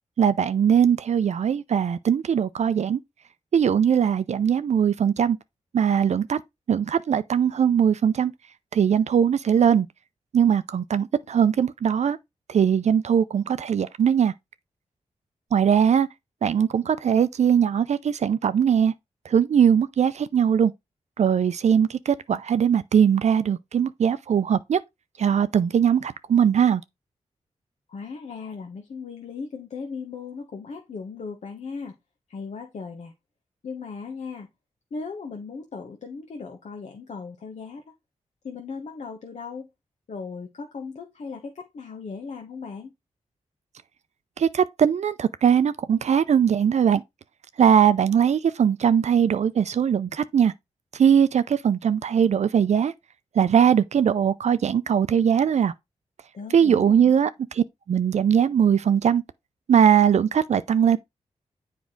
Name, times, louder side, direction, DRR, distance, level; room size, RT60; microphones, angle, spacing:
voice 1, 0.2-3.0 3.5-5.4 5.7-6.4 6.7-8.3 8.7-9.9 10.3-12.2 12.5-14.3 15.5-16.1 16.4-18.9 19.3-20.7 21.2-24.8 25.2-26.8 44.4-47.0 47.6-50.5 51.0-52.9 53.4-55.7 56.5-57.3 57.6-59.2 59.7-61.0, right 8 dB, 65° right, 0.5 m, -20 dB
voice 2, 27.9-31.9 32.3-33.1 33.6-34.5 34.9-37.9 38.4-39.7 40.1-42.9 56.3-57.2, left 5 dB, 65° left, 1.1 m, -37 dB
7.3 x 4.6 x 3.8 m
cardioid pair, 55°, 13 cm